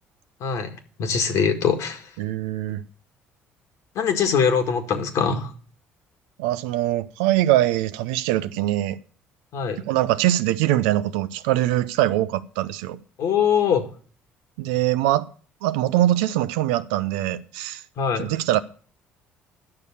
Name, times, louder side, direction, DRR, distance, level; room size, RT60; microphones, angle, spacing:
voice 1, 0.4-0.7 1.0-2.0 3.9-5.5 9.5-9.8 13.2-13.8 18.0-18.3, left 7 dB, 65° left, 1.8 m, -22 dB
voice 2, 2.2-2.8 6.4-9.0 9.8-13.0 14.6-15.3 15.6-17.8 18.2-18.6, right 14 dB, 80° right, 0.6 m, -22 dB
10.5 x 6.7 x 7.1 m
hypercardioid pair, 60°, 6 cm